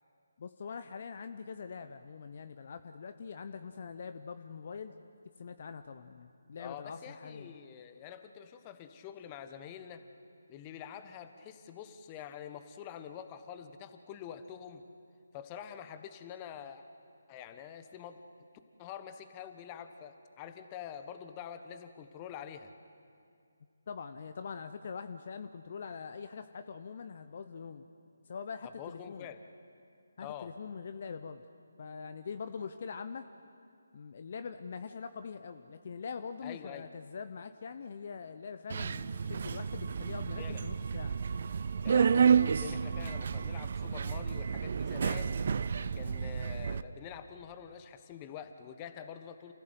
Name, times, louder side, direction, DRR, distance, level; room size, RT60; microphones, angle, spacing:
voice 1, 0.4-4.9 5.4-7.5 23.9-27.9 28.3-29.3 30.2-31.4 31.8-33.3 33.9-41.2, left 5 dB, 45° left, 9 dB, 0.8 m, -43 dB
voice 2, 6.6-10.0 10.5-14.8 15.3-16.8 17.3-18.2 18.8-22.7 28.6-29.4 30.2-30.5 36.4-36.9 40.4-40.6 41.8-45.4 45.9-49.5, left 9 dB, 20° left, 9 dB, 1.2 m, -46 dB
Subway metro underground, 38.7-46.8, right 6 dB, 50° right, 0.6 m, -30 dB
28.5 x 15.5 x 8.1 m, 2.4 s
figure-of-eight pair, 150°, 0 cm